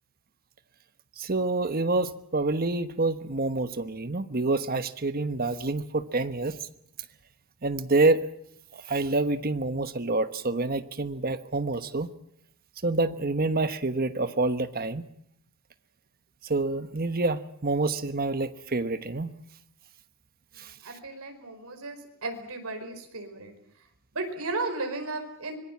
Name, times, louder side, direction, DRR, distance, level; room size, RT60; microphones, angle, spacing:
voice 1, 1.2-6.5 7.6-8.2 8.7-12.1 12.8-15.0 16.4-19.3 20.6-20.7, right 3 dB, 45° right, 11 dB, 1.2 m, -27 dB
voice 2, 20.5-23.5 24.1-25.6, right 2 dB, 80° right, 5 dB, 4.9 m, -35 dB
25.0 x 21.0 x 7.4 m, 0.71 s
head